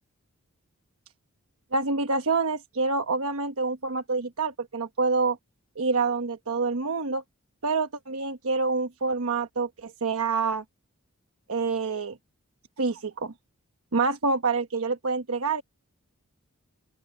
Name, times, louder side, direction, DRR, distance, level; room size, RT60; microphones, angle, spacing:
voice 1, 1.7-5.4 5.8-7.2 7.6-10.6 11.5-12.2 12.8-13.3 13.9-15.6, right 4 dB, 80° right, 1.1 m, -27 dB
open air
head